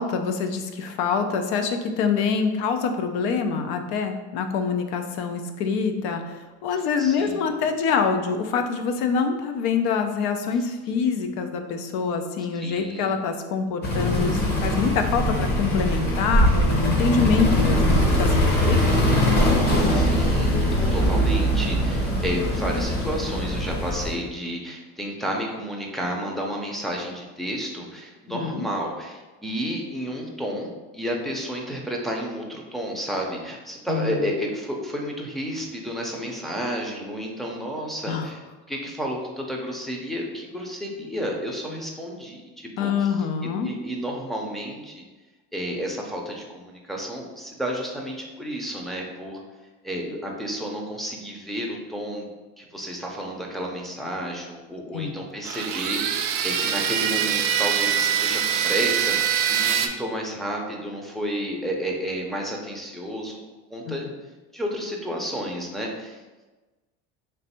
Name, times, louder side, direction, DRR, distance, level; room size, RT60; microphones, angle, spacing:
voice 1, 0.0-6.2 6.6-19.0 28.3-28.7 33.9-34.2 38.1-38.3 42.8-43.7 54.9-55.2 63.9-64.0, left 5 dB, 70° left, 7 dB, 0.6 m, -25 dB
voice 2, 7.0-7.5 12.5-13.2 18.7-19.2 19.7-38.4 38.7-43.1 43.4-45.0 45.5-49.4 49.8-52.3 52.6-63.4 63.7-64.1 64.5-66.2, equal, ahead, -2 dB, 0.5 m, -31 dB
sound 1, 13.8-24.1, equal, 30° left, 1.0 m, -21 dB
sound 2, 55.4-59.9, right 9 dB, 45° right, 0.4 m, -24 dB
3.3 x 2.5 x 4.2 m, 1.2 s
cardioid pair, 125°, 31 cm